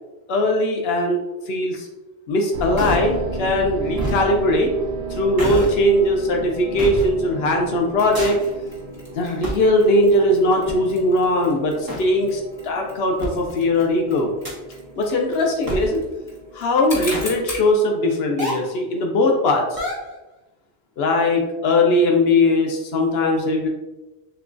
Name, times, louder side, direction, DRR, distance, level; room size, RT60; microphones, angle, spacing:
voice 1, 0.3-1.9 2.3-4.7 5.1-8.4 9.2-14.3 15.0-16.0 16.5-19.8 21.0-23.7, left 1 dB, 80° left, 2 dB, 0.8 m, -20 dB
sound 1, 2.5-16.6, right 3 dB, 60° right, 0.7 m, -34 dB
sound 2, 2.8-3.1 4.0-4.3 5.4-5.8 6.8-7.1 8.2-8.5 9.4-9.7 10.7-10.8 11.9-12.0 13.2-13.3 14.5-14.7 15.7-15.9 17.1-17.4 18.4-18.8 19.8-20.2, equal, 25° right, 0.9 m, -26 dB
Mechanisms, 8.0-17.7, left 1 dB, 35° left, 1.4 m, -40 dB
6.7 x 2.3 x 2.5 m, 1.1 s
omnidirectional pair, 1.0 m